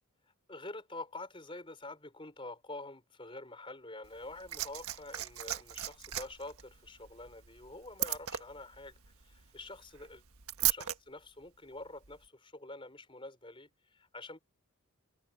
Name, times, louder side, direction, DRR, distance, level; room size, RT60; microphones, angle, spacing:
voice 1, 0.5-10.2 10.6-14.4, left 2 dB, 25° left, 4.7 m, -47 dB
Liquid, 4.0-11.0 12.0-12.2, right 13 dB, 80° right, 1.5 m, -37 dB
head